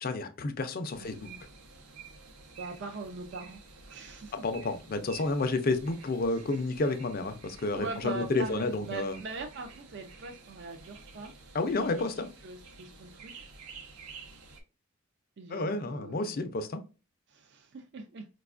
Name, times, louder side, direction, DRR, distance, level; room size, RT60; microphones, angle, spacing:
voice 1, 0.0-1.3 4.3-9.2 11.5-12.3 15.5-16.8, left 3 dB, 40° left, 0.4 m, -30 dB
sound 1, 0.9-14.6, right 4 dB, 85° right, 0.8 m, -51 dB
voice 2, 1.0-1.4 2.5-3.6 3.8-4.5 7.7-11.3 11.9-13.5 15.4-16.4 17.3-18.3, right 4 dB, 50° right, 0.4 m, -42 dB
4.8 x 2.3 x 2.4 m
head